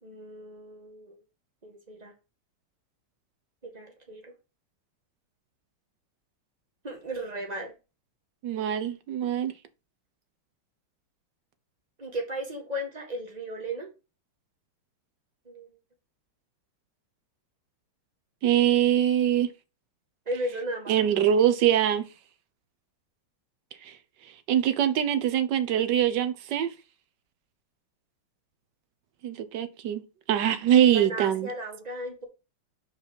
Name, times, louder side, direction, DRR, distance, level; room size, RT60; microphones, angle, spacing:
voice 1, 0.0-1.2 1.6-2.1 3.6-4.3 6.8-7.7 12.0-13.9 15.4-15.7 20.2-21.0 30.9-32.2, right 1 dB, 20° right, 1.8 m, -35 dB
voice 2, 8.4-9.5 18.4-19.5 20.9-22.0 23.8-24.0 24.5-26.7 29.2-30.0 30.3-31.5, right 10 dB, 60° right, 1.4 m, -23 dB
5.6 x 4.9 x 5.2 m
omnidirectional pair, 2.3 m